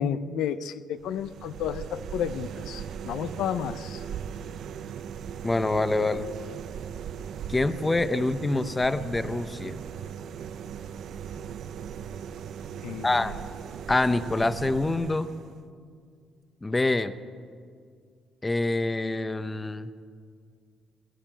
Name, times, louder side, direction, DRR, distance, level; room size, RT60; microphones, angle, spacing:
voice 1, 0.0-4.0 12.8-13.4, left 8 dB, 90° left, 12 dB, 0.7 m, -32 dB
sound 1, 1.0-15.7, right 8 dB, 65° right, 0.7 m, -38 dB
voice 2, 5.4-6.3 7.5-9.8 13.0-13.3 13.9-15.3 16.6-17.1 18.4-19.9, left 2 dB, 15° left, 12 dB, 0.8 m, -26 dB
21.0 x 15.0 x 9.2 m, 2.2 s
cardioid pair, 120°, 0 cm